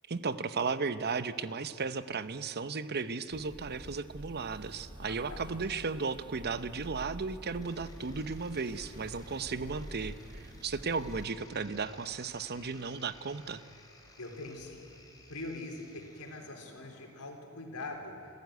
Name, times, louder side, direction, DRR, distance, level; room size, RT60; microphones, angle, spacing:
voice 1, 0.1-13.6, right 4 dB, 50° right, 13 dB, 0.9 m, -35 dB
sound 1, 3.3-11.3, right 1 dB, 20° right, 1.0 m, -48 dB
voice 2, 5.0-5.4 14.2-14.8 15.3-18.1, left 2 dB, 85° left, 2 dB, 4.0 m, -43 dB
sound 2, 7.6-17.1, left 1 dB, 15° left, 3.4 m, -56 dB
27.5 x 14.5 x 9.4 m, 2.7 s
head